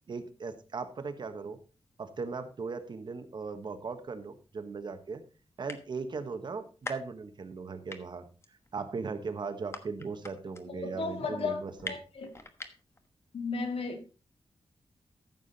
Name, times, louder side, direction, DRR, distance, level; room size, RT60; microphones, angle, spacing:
voice 1, 0.1-1.6 2.0-5.2 5.6-8.3 8.7-11.9, right 4 dB, 50° right, 9 dB, 1.3 m, -38 dB
sound 1, 4.2-4.3 4.9-5.0 5.2-5.3 5.5-6.2 6.5-7.6 7.9-13.1, left 3 dB, 25° left, 1.2 m, -43 dB
voice 2, 10.7-11.6 11.9-12.3 13.3-14.2, left 4 dB, 70° left, 5 dB, 2.1 m, -34 dB
14.5 x 7.3 x 4.1 m, 0.34 s
wide cardioid pair, 170°, 10 cm